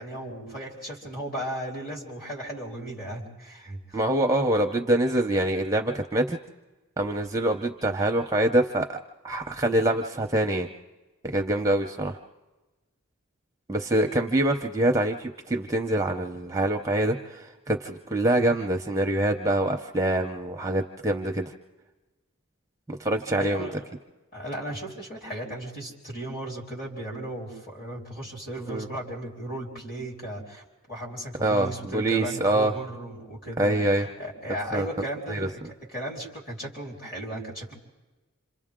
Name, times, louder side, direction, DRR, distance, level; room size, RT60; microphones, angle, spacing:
voice 1, 0.0-4.0 23.4-23.8 24.3-37.7, right 1 dB, 40° left, -2 dB, 4.1 m, -36 dB
voice 2, 3.9-6.4 7.0-9.0 9.2-10.7 11.2-12.2 13.7-21.5 22.9-23.7 28.7-28.9 31.4-32.7 33.6-34.1 34.7-34.9 35.3-35.5, right 1 dB, 15° right, 3 dB, 0.6 m, -25 dB
27.0 x 27.0 x 3.7 m, 1.1 s
head